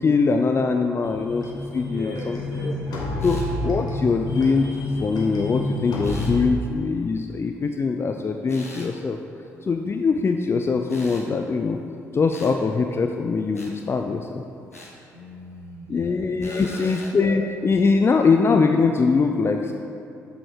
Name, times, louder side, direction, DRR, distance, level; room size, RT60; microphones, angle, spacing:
voice 1, 0.0-1.4 1.7-2.7 3.2-4.7 5.0-9.2 9.6-11.8 12.1-14.4 15.9-19.7, left 4 dB, 30° left, 4 dB, 0.5 m, -22 dB
sound 1, 1.0-6.4, left 1 dB, 55° left, 1.3 m, -29 dB
voice 2, 1.8-3.3 15.1-16.1 16.4-17.0, equal, 70° right, -2 dB, 1.3 m, -39 dB
sound 2, 3.2-3.5 6.0-6.3 8.5-8.9 10.9-11.3 12.3-12.6 13.5-13.7 14.7-15.0 16.4-17.2, left 1 dB, 90° left, 0.7 m, -43 dB
7.8 x 6.1 x 5.0 m, 2.8 s
figure-of-eight pair, 40°, 8 cm